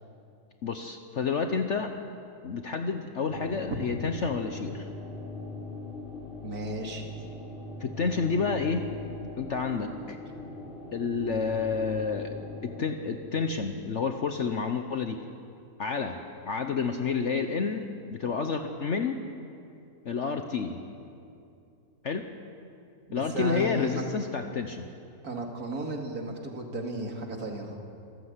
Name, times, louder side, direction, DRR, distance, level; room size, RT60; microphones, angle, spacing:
voice 1, 0.6-1.9 2.4-4.9 7.8-8.9 9.4-10.2 10.9-15.2 15.8-19.2 20.0-20.8 22.0-22.3 23.1-24.9, left 5 dB, 50° left, 6 dB, 1.2 m, -30 dB
sound 1, 3.3-12.8, left 2 dB, ahead, 4.4 m, -41 dB
voice 2, 6.4-7.1 23.3-24.0 25.2-27.7, right 1 dB, 70° right, 2 dB, 2.8 m, -34 dB
26.5 x 14.5 x 8.2 m, 2.6 s
omnidirectional pair, 1.6 m